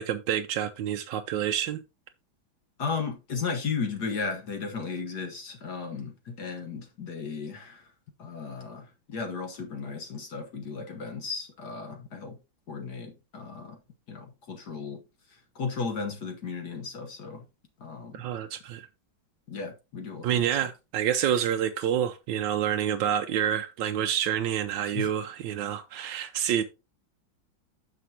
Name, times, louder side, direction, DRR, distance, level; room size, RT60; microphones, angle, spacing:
voice 1, 0.0-1.8 18.1-18.9 20.2-26.6, right 9 dB, 75° right, 1.2 m, -28 dB
voice 2, 2.8-7.9 8.2-12.4 12.7-13.8 14.1-15.0 15.5-17.4 17.8-18.2 19.5-20.4 24.9-25.1, left 5 dB, 55° left, 1.5 m, -35 dB
9.4 x 6.2 x 2.8 m
omnidirectional pair, 2.2 m